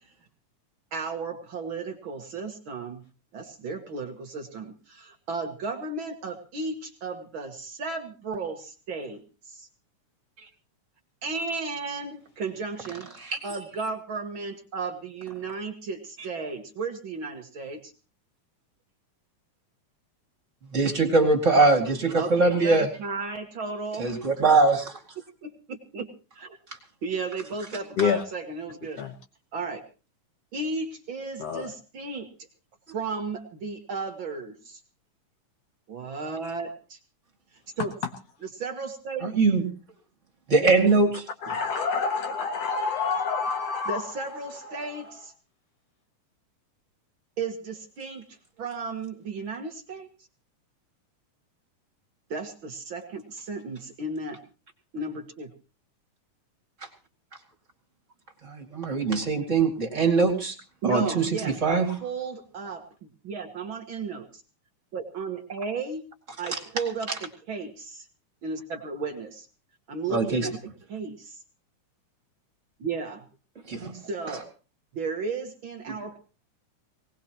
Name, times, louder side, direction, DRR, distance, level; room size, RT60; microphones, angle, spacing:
voice 1, 0.9-3.0 3.3-9.2 9.5-9.7 11.2-13.1 13.4-17.9 22.1-24.1 24.4-24.5 25.4-26.1 26.4-26.6 27.0-29.0 29.5-29.8 30.5-32.3 32.9-34.8 35.9-37.0 37.8-37.9 38.5-39.4 43.9-45.3 47.4-48.3 48.6-50.1 52.3-54.4 54.9-55.5 60.8-64.4 64.9-66.1 66.4-68.1 68.4-69.5 69.9-70.5 70.9-71.4 72.8-73.3 73.9-74.5 74.9-76.2, right 4 dB, 50° right, 1.6 m, -34 dB
voice 2, 20.7-22.9 24.0-25.0 39.2-39.6 40.5-41.2 58.4-60.5 60.8-61.9 66.5-66.6 70.1-70.5 73.7-73.9 75.9-76.0, right 3 dB, 25° right, 2.1 m, -22 dB
voice 3, 31.4-31.7 41.4-44.1 44.6-45.0, left 5 dB, 65° left, 1.7 m, -27 dB
19.5 x 19.0 x 3.0 m
omnidirectional pair, 3.8 m